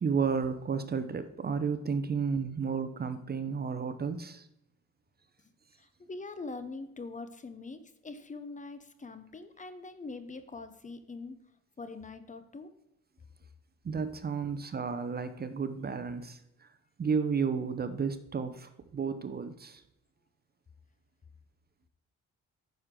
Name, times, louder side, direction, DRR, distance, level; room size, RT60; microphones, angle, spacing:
voice 1, 0.0-4.5 13.8-16.7 17.0-19.8, right 5 dB, 30° right, 0.7 m, -32 dB
voice 2, 5.8-11.4 11.8-12.7, left 3 dB, 25° left, 0.8 m, -43 dB
9.3 x 6.5 x 3.7 m
cardioid pair, 90°, 30 cm